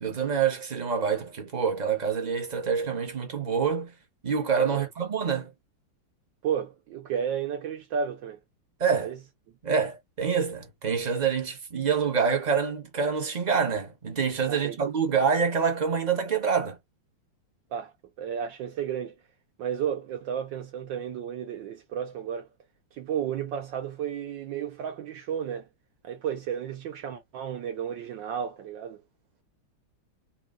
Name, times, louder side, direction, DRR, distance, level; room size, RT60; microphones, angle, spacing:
voice 1, 0.0-3.9 4.2-5.5 8.8-9.1 9.6-16.8, right 6 dB, 35° right, 0.6 m, -26 dB
voice 2, 6.4-8.4 9.0-9.2 14.5-14.9 17.7-19.1 19.6-22.5 22.9-25.7 26.0-29.0, right 8 dB, 75° right, 1.5 m, -33 dB
3.6 x 2.4 x 3.5 m
omnidirectional pair, 2.1 m